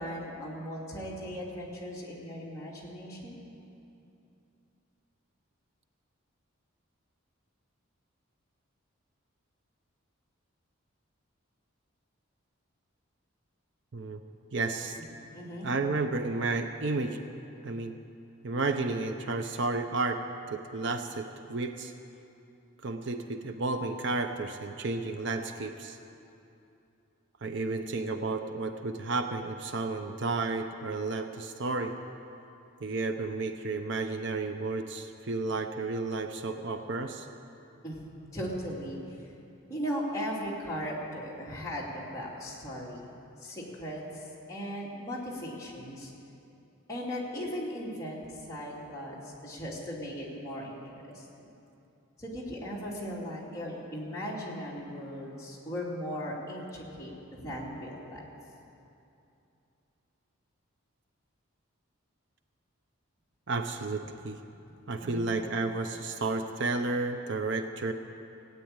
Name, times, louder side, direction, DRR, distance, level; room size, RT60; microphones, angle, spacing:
voice 1, 0.0-3.4 15.3-15.7 37.8-38.0 38.3-39.2 39.7-43.0 43.4-46.1 46.9-51.5 52.2-58.2 65.0-65.3, equal, 15° left, -6 dB, 2.5 m, -38 dB
voice 2, 14.5-15.0 15.6-17.2 17.6-17.9 18.4-20.2 20.5-21.9 22.8-26.0 27.4-31.9 32.8-37.3 63.5-64.4 64.9-67.9, right 3 dB, 55° right, 7 dB, 0.6 m, -32 dB
16.5 x 9.1 x 8.8 m, 2.8 s
head